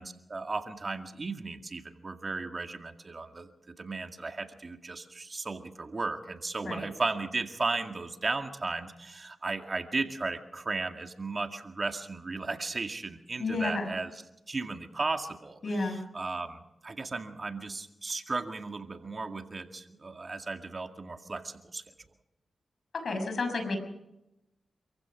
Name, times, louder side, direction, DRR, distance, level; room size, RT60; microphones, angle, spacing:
voice 1, 0.0-3.5 3.8-14.1 14.5-21.8, right 3 dB, 45° right, 6 dB, 2.1 m, -35 dB
voice 2, 13.4-13.9 15.6-16.0 22.9-23.8, left 3 dB, 65° left, 6 dB, 6.1 m, -31 dB
27.5 x 15.5 x 6.2 m, 0.90 s
cardioid pair, 45°, 0 cm